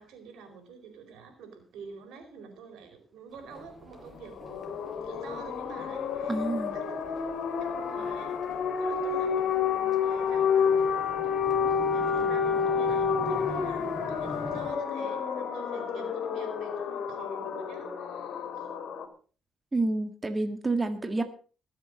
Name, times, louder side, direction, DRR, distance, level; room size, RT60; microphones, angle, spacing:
voice 1, 0.0-7.0 7.6-8.3 8.8-11.5 11.8-18.7 20.3-20.4, right 5 dB, 85° right, 5 dB, 4.6 m, -47 dB
sound 1, 3.3-14.7, left 1 dB, 10° left, 5.9 m, -46 dB
sound 2, 4.2-19.0, left 6 dB, 70° left, 2.7 m, -29 dB
voice 2, 6.3-6.7 19.7-21.2, right 2 dB, 20° right, 8 dB, 1.7 m, -28 dB
21.0 x 7.4 x 5.2 m, 0.38 s
cardioid pair, 90°, 0 cm